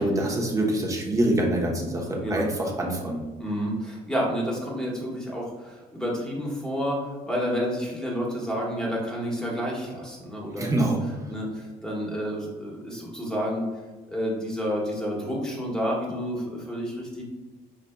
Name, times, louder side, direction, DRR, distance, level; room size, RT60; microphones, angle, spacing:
voice 1, 0.0-3.2 10.6-11.0, right 1 dB, 20° right, -1 dB, 0.9 m, -25 dB
voice 2, 3.4-10.7 11.3-13.7 14.1-17.2, equal, 5° left, -3 dB, 1.2 m, -30 dB
5.1 x 3.9 x 2.3 m, 1.3 s
cardioid pair, 110°, 17 cm